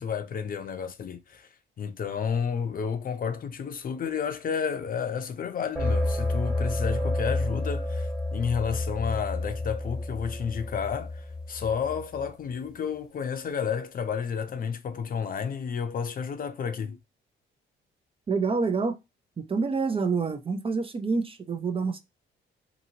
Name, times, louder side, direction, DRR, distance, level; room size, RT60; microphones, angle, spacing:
voice 1, 0.0-1.5 1.8-17.0, left 7 dB, 45° left, 0.6 m, -31 dB
sound 1, 5.8-12.3, left 2 dB, 5° right, 1.0 m, -30 dB
voice 2, 18.3-19.0 19.4-22.0, right 4 dB, 30° right, 0.5 m, -27 dB
2.8 x 2.6 x 2.7 m
cardioid pair, 90°, 20 cm